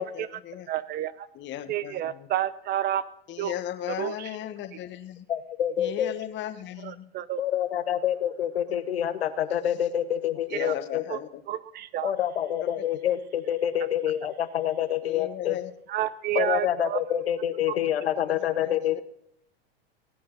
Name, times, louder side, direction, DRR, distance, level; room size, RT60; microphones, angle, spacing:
voice 1, 0.0-0.7 1.3-2.3 3.3-5.3 5.8-7.1 8.7-8.8 9.7-9.8 10.5-11.4 12.6-12.8 15.0-15.7 17.7-17.8 18.3-19.0, left 12 dB, 35° left, 10 dB, 1.3 m, -37 dB
voice 2, 0.7-1.3 1.7-3.6 4.0-4.3 6.8-7.4 10.5-10.7 11.1-11.2 11.5-12.1 15.9-17.0, right 12 dB, 30° right, 17 dB, 0.6 m, -30 dB
voice 3, 5.3-6.1 7.4-11.0 12.0-15.6 16.3-19.0, left 10 dB, 80° left, 11 dB, 1.0 m, -27 dB
19.0 x 8.5 x 3.9 m, 0.74 s
hypercardioid pair, 100°, 30 cm